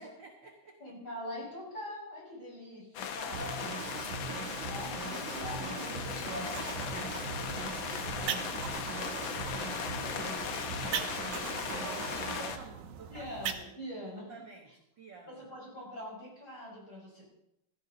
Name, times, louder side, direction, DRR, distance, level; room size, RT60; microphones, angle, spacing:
voice 1, 0.0-0.8 4.8-4.9 6.1-10.6 11.5-13.3 14.0-15.4, right 4 dB, 45° right, 1 dB, 1.6 m, -50 dB
voice 2, 0.8-4.2 4.6-6.4 8.7-9.0 11.2-12.2 13.1-14.3 15.3-17.2, left 1 dB, 30° left, -3 dB, 6.3 m, -44 dB
sound 1, 2.9-12.6, left 8 dB, 85° left, 1.1 m, -38 dB
Drum kit / Drum, 3.3-12.5, right 4 dB, 65° right, 2.9 m, -40 dB
sound 2, 6.1-13.6, right 8 dB, 85° right, 2.4 m, -42 dB
17.0 x 13.5 x 4.0 m, 0.81 s
omnidirectional pair, 3.4 m